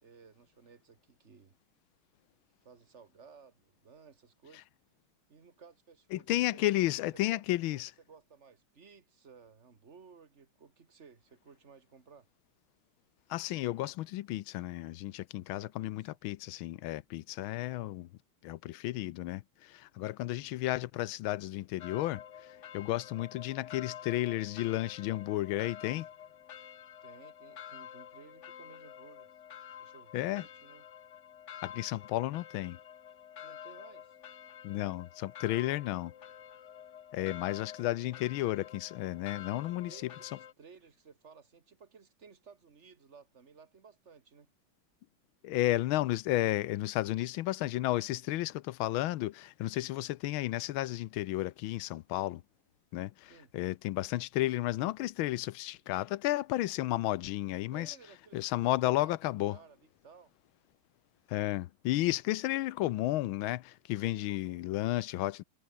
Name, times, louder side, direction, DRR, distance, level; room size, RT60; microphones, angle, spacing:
voice 1, 0.0-1.6 2.6-4.7 5.3-7.4 7.7-7.8 8.1-12.3 15.6-16.1 27.0-29.3 29.8-30.8 33.4-34.2 39.5-44.5 53.3-53.5 57.7-60.3 64.0-64.7, right 5 dB, 35° right, 2.2 m, -57 dB
voice 2, 6.1-7.9 13.3-18.1 18.4-26.1 30.1-30.4 31.6-32.8 34.6-36.1 37.1-40.1 45.4-52.4 52.9-57.9 58.3-59.6 61.3-65.4, left 16 dB, 85° left, 1.5 m, -33 dB
Churchbell - Exterior, 21.8-40.5, left 9 dB, 55° left, 0.8 m, -49 dB
omnidirectional pair, 2.3 m